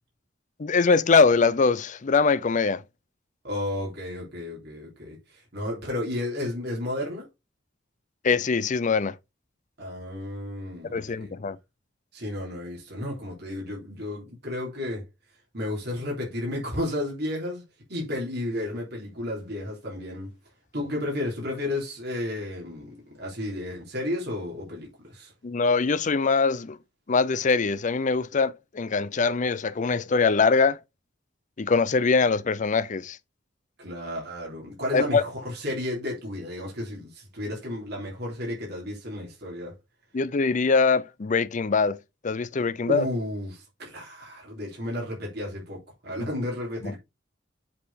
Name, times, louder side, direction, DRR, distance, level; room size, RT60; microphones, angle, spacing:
voice 1, 0.6-2.8 8.2-9.1 10.9-11.6 25.4-26.8 27.1-30.8 31.6-33.2 34.9-35.2 40.1-42.0 42.2-43.1 46.2-46.3 46.8-46.9, left 4 dB, 40° left, 0.5 m, -23 dB
voice 2, 3.4-7.3 9.8-11.3 12.1-15.0 15.5-17.6 17.9-20.3 20.7-25.3 33.8-39.7 42.9-47.0, left 1 dB, 60° right, 3.4 m, -32 dB
7.7 x 4.3 x 4.1 m
head